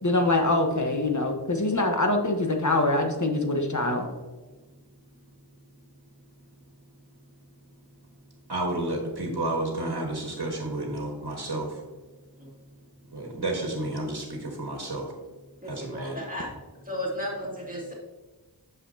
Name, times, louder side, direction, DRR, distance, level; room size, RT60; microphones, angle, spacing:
voice 1, 0.0-4.1, left 2 dB, 45° left, 3 dB, 1.2 m, -24 dB
voice 2, 8.5-11.8 13.1-15.1 15.7-16.2, right 2 dB, 65° right, 0 dB, 1.5 m, -31 dB
voice 3, 15.6-16.5 16.8-17.9, equal, 20° right, -4 dB, 2.3 m, -34 dB
9.4 x 6.7 x 2.8 m, 1.2 s
wide cardioid pair, 45°, 41 cm